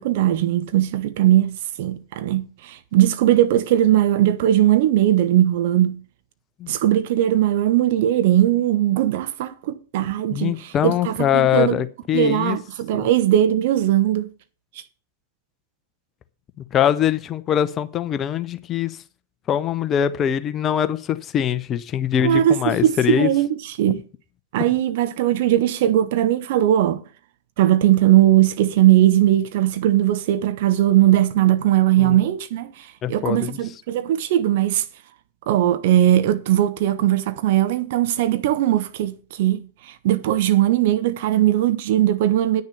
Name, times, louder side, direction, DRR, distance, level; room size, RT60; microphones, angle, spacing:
voice 1, 0.0-6.0 6.7-11.8 12.1-14.3 22.2-24.0 24.5-27.0 27.6-34.8 35.5-42.6, right 12 dB, 55° right, 1.2 m, -19 dB
voice 2, 10.3-12.6 12.9-13.1 16.7-19.0 19.5-23.3 32.0-32.1 33.0-33.6, left 10 dB, 30° left, 0.8 m, -22 dB
9.8 x 6.6 x 6.8 m
hypercardioid pair, 105°, 0 cm